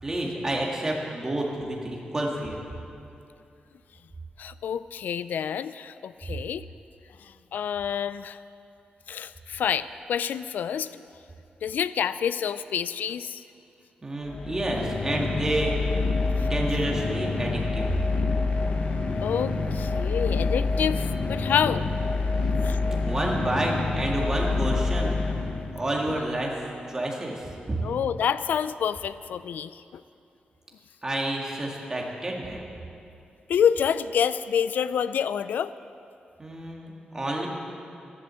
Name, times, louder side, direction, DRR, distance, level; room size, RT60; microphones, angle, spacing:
voice 1, 0.0-2.6 14.0-15.8 16.2-17.9 22.5-25.2 25.7-26.5 26.9-27.8 31.0-32.6 36.4-37.5, right 1 dB, 20° right, -1 dB, 2.0 m, -29 dB
voice 2, 4.4-6.6 7.2-8.4 9.1-11.0 11.6-13.4 16.4-16.5 19.2-21.8 22.6-23.0 27.8-30.0 33.5-35.7, left 8 dB, 85° left, 15 dB, 0.3 m, -28 dB
sound 1, 14.3-26.1, left 3 dB, 50° left, 1.1 m, -27 dB
13.0 x 11.5 x 7.6 m, 2.6 s
wide cardioid pair, 160°, 3 cm